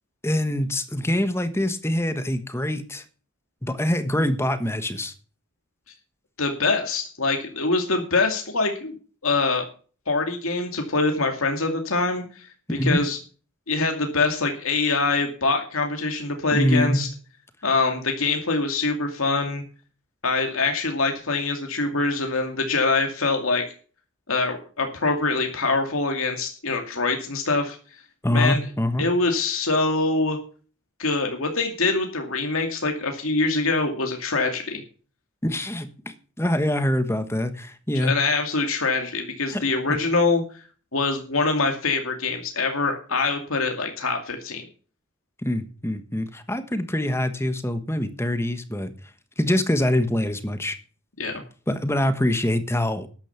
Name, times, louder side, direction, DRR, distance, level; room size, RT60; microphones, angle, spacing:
voice 1, 0.2-3.0 3.6-5.1 12.7-13.0 16.5-17.0 28.2-29.0 35.4-38.1 39.5-39.6 45.4-48.9 49.4-50.8 51.7-53.1, left 1 dB, 10° left, 10 dB, 1.3 m, -24 dB
voice 2, 6.4-8.9 9.2-9.6 10.1-12.5 12.8-13.2 13.7-17.1 17.6-19.6 20.2-23.6 24.3-27.8 28.3-28.6 29.0-30.4 31.0-34.8 38.0-40.4 40.9-44.6 51.2-51.4, left 3 dB, 75° left, 4 dB, 2.4 m, -24 dB
13.0 x 10.0 x 5.9 m, 0.39 s
head